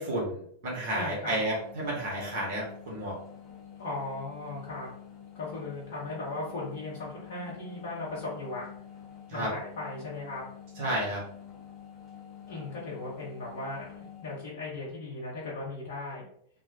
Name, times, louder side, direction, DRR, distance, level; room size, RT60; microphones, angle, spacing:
voice 1, 0.0-3.2 9.3-9.5 10.8-11.2, right 1 dB, 50° right, -3 dB, 0.9 m, -31 dB
voice 2, 0.9-1.4 3.8-4.9 5.3-8.7 9.3-10.4 12.5-16.3, left 2 dB, 55° left, -5 dB, 0.7 m, -37 dB
sound 1, 0.9-14.5, left 9 dB, 10° left, 0.7 m, -48 dB
2.2 x 2.0 x 2.7 m, 0.65 s
figure-of-eight pair, 90°, 0 cm